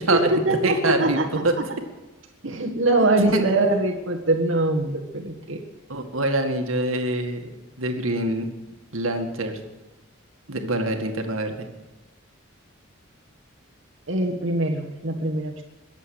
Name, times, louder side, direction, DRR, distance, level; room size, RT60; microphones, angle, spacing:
voice 1, 0.1-1.2 2.4-5.6 14.1-15.6, right 2 dB, 65° right, 1 dB, 1.6 m, -23 dB
voice 2, 0.6-1.2 1.4-1.5 3.3-3.4 5.9-7.5 7.8-8.5 8.9-9.6 10.5-11.5, right 2 dB, 85° right, 5 dB, 2.1 m, -24 dB
22.0 x 8.2 x 7.9 m, 1.1 s
head